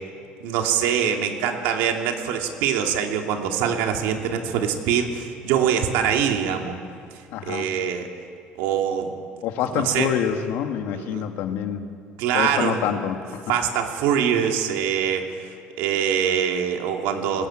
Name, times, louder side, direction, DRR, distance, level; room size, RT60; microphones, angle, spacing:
voice 1, 0.4-6.8 7.4-8.1 8.6-9.1 9.7-10.1 10.9-11.2 12.2-12.9 13.5-15.5 15.8-17.5, right 8 dB, 85° right, 3 dB, 2.7 m, -24 dB
voice 2, 7.3-7.7 9.4-11.9 12.3-13.4, left 9 dB, 70° left, 6 dB, 1.9 m, -26 dB
21.0 x 19.0 x 8.9 m, 2.3 s
cardioid pair, 150°, 4 cm